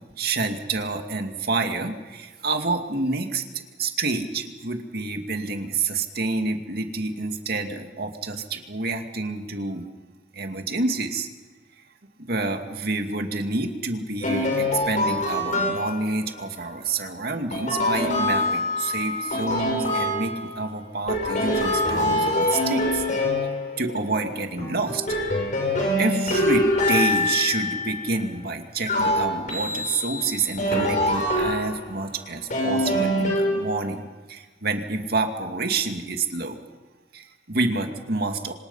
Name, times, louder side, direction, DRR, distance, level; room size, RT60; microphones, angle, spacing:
voice 1, 0.2-9.8 10.3-11.3 12.2-23.0 23.8-25.0 26.0-36.6 37.1-38.5, right 3 dB, 60° right, 5 dB, 2.4 m, -28 dB
sound 1, 14.2-16.2 17.5-20.7 21.1-24.1 24.6-28.1 28.8-31.9 32.5-34.0, left 1 dB, 45° left, 7.1 m, -25 dB
27.5 x 25.5 x 5.7 m, 1.2 s
head